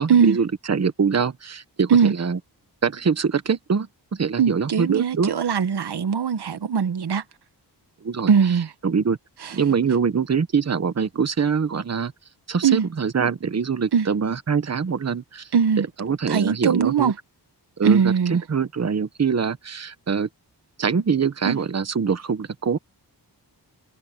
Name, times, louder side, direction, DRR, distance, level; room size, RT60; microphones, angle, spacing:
voice 1, 0.0-2.4 2.8-5.3 8.0-8.3 8.8-9.2 9.5-12.1 12.5-15.5 16.0-17.1 17.8-20.3 20.8-22.8, right 6 dB, 40° right, 1.2 m, -24 dB
voice 2, 4.4-7.2 8.3-8.7 9.4-9.5 12.6-12.8 13.9-14.1 15.5-15.9 16.3-17.1 17.8-18.4 21.4-21.6, right 7 dB, 70° right, 1.4 m, -20 dB
wide cardioid pair, 125°, 41 cm